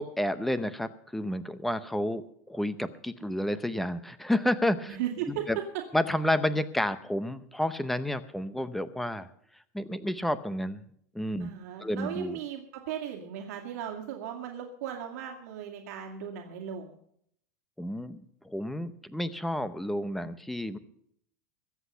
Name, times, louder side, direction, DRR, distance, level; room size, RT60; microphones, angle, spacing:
voice 1, 0.0-5.0 5.3-5.6 5.9-9.3 9.7-10.8 11.1-11.5 11.8-12.4 17.8-20.8, left 1 dB, ahead, 13 dB, 0.7 m, -30 dB
voice 2, 4.9-5.5 5.7-5.8 11.4-17.0, right 10 dB, 70° right, 0 dB, 2.4 m, -37 dB
22.5 x 8.3 x 5.5 m, 0.67 s
supercardioid pair, 160°, 9 cm